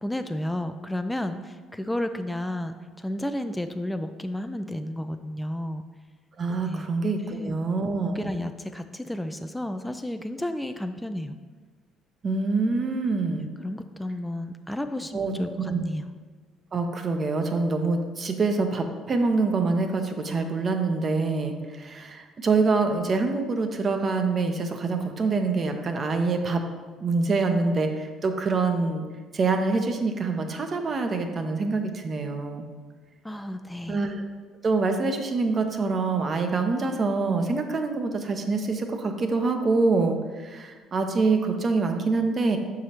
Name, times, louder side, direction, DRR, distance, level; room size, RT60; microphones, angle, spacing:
voice 1, 0.0-5.8 6.7-6.9 7.2-7.6 8.1-11.3 13.6-16.1 33.2-34.0, left 1 dB, 5° left, 8 dB, 0.4 m, -32 dB
voice 2, 6.4-8.3 12.2-13.5 15.1-15.8 16.7-26.6 27.0-29.0 29.3-32.7 33.9-34.2 34.6-42.6, right 3 dB, 40° right, 5 dB, 0.7 m, -25 dB
6.8 x 4.8 x 2.9 m, 1.4 s
hypercardioid pair, 65°, 0 cm